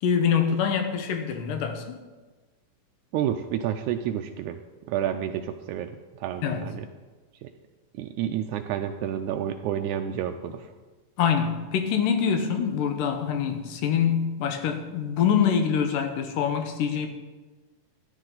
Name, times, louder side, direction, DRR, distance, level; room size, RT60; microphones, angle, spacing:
voice 1, 0.0-2.0 6.4-6.6 11.2-17.1, left 7 dB, 75° left, 6 dB, 2.6 m, -25 dB
voice 2, 3.1-4.6 4.9-6.9 7.4-7.5 7.9-10.7, right 10 dB, 85° right, 6 dB, 1.7 m, -30 dB
14.0 x 11.0 x 4.0 m, 1.3 s
omnidirectional pair, 4.0 m